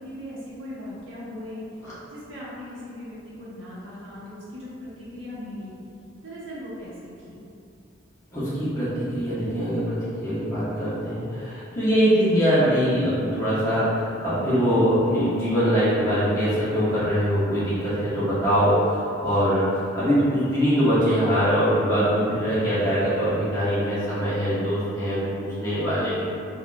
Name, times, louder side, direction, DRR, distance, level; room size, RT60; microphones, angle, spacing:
voice 1, 0.0-1.6 2.1-5.7 6.2-7.4, left 1 dB, 75° right, -8 dB, 0.8 m, -38 dB
voice 2, 8.3-26.2, equal, 15° left, -13 dB, 0.9 m, -23 dB
3.6 x 2.4 x 2.2 m, 2.5 s
head